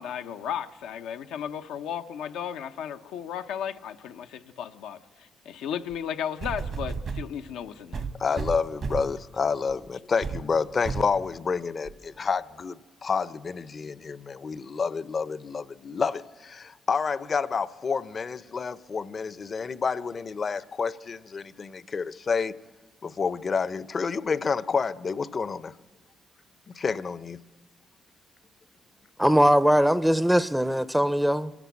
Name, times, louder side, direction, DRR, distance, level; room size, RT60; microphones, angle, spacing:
voice 1, 0.0-8.0, left 8 dB, 90° left, 0.7 m, -35 dB
sound 1, 5.9-6.0 6.4-7.3 7.9-9.2 9.7-9.8 10.2-10.4 10.8-11.2 11.9-12.0, right 5 dB, 60° right, 1.3 m, -33 dB
voice 2, 8.2-22.5 23.0-25.7 26.8-27.4, left 5 dB, 45° left, 0.7 m, -29 dB
voice 3, 29.2-31.5, equal, 5° right, 0.6 m, -21 dB
26.5 x 12.0 x 8.3 m
supercardioid pair, 65°, 0 cm